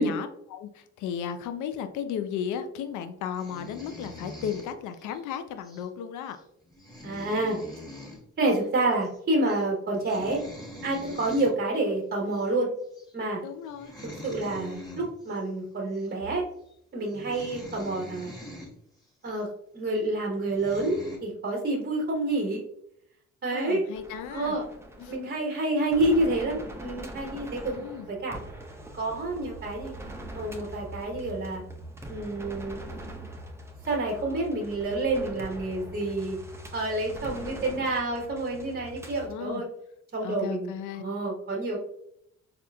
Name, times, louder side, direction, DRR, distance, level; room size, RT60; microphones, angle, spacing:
voice 1, 0.0-6.4 13.4-13.9 23.4-24.6 25.0-25.2 27.7-28.1 39.3-39.6 40.2-41.0, left 8 dB, 75° left, 9 dB, 0.5 m, -35 dB
sound 1, 3.3-5.2 5.6-5.9 6.3-6.4 6.7-8.2 8.5-8.6 8.9-9.2 9.5-9.7 10.0-11.5 12.3-12.5 12.9-13.1 13.7-15.4 15.9-16.1 16.7-16.8 17.1-18.7 19.3-19.4 20.1-20.2 20.5-21.2, left 1 dB, 15° left, 1.3 m, -43 dB
voice 2, 7.0-7.6 8.4-10.4 10.8-12.7 13.1-13.4 14.2-16.5 16.9-18.4 19.2-19.5 19.7-22.6 23.4-23.8 24.3-24.6 25.1-27.7 28.1-28.4 28.9-29.9 30.3-31.6 32.1-32.8 33.9-36.4 36.7-39.7 40.1-41.8, right 2 dB, 35° right, -2 dB, 1.0 m, -28 dB
sound 2, 23.9-39.3, right 1 dB, 10° right, 0.6 m, -42 dB
4.2 x 2.5 x 2.3 m, 0.75 s
supercardioid pair, 70°, 30 cm